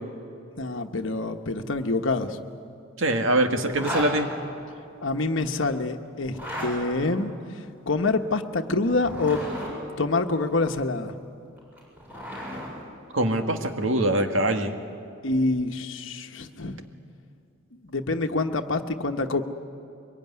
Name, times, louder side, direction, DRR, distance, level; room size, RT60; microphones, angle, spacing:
voice 1, 0.6-2.4 5.0-7.3 7.9-9.5 10.0-11.1 15.2-16.8 17.8-19.4, left 3 dB, 70° left, 4 dB, 1.2 m, -26 dB
voice 2, 3.0-4.3 13.1-14.7, right 1 dB, 70° right, 5 dB, 1.8 m, -23 dB
Zipper (clothing), 3.7-4.1 6.2-6.7 8.9-9.7 11.6-12.7, equal, 10° right, 7.2 m, -34 dB
24.0 x 22.0 x 9.6 m, 2.6 s
head